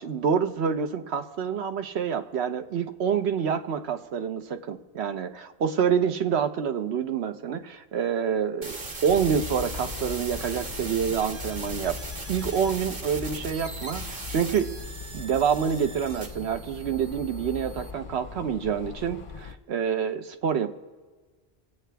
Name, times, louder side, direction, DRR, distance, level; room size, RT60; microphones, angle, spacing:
voice 1, 0.0-12.0 12.3-14.8 15.1-20.7, right 7 dB, 85° right, 9 dB, 1.0 m, -27 dB
sound 1, 8.6-17.9, right 3 dB, 60° right, 1.4 m, -39 dB
sound 2, 9.1-19.6, left 6 dB, 45° left, 0.4 m, -40 dB
23.5 x 8.3 x 3.4 m, 1.4 s
omnidirectional pair, 1.1 m